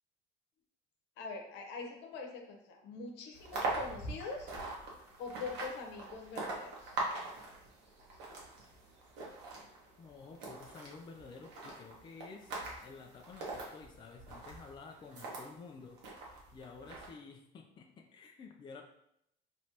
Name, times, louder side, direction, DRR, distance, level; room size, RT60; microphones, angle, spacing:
voice 1, 1.2-4.5 5.2-6.9, left 4 dB, 80° left, 2 dB, 0.9 m, -43 dB
sound 1, 3.3-15.5 16.0-17.1, right 2 dB, 75° right, 1.3 m, -42 dB
voice 2, 10.0-16.3 16.5-18.8, left 4 dB, 25° left, 3 dB, 0.4 m, -52 dB
4.7 x 3.1 x 2.8 m, 0.76 s
cardioid pair, 130°, 18 cm